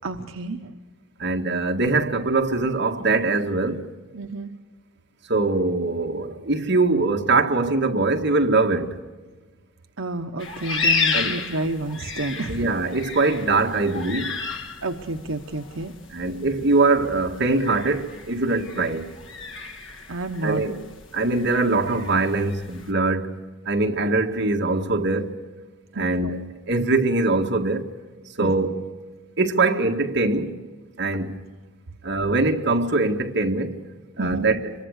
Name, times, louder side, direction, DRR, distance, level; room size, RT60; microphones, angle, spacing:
voice 1, 0.0-0.7 4.1-4.5 10.0-12.7 14.8-15.9 20.1-20.6 25.9-26.3 28.4-28.5 34.2-34.5, right 2 dB, 75° right, 1.0 m, -30 dB
voice 2, 1.2-3.9 5.3-9.0 11.1-11.5 12.5-14.4 16.1-19.1 20.4-20.8 21.1-25.4 25.9-27.9 28.4-28.9 29.4-30.6 31.0-31.4 32.0-33.8 34.2-34.7, right 3 dB, 55° right, 1.8 m, -22 dB
sound 1, 10.4-22.9, left 4 dB, 65° left, 2.3 m, -32 dB
25.5 x 23.0 x 6.5 m
head